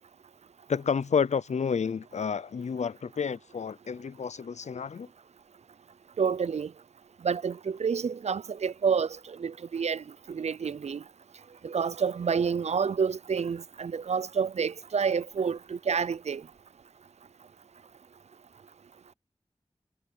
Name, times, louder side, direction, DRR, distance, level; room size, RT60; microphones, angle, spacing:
voice 1, 0.7-5.1, left 6 dB, 90° left, 0.5 m, -30 dB
voice 2, 6.2-6.7 7.2-11.0 11.6-16.4, right 6 dB, 75° right, 0.4 m, -29 dB
wide cardioid pair, 70°, 11 cm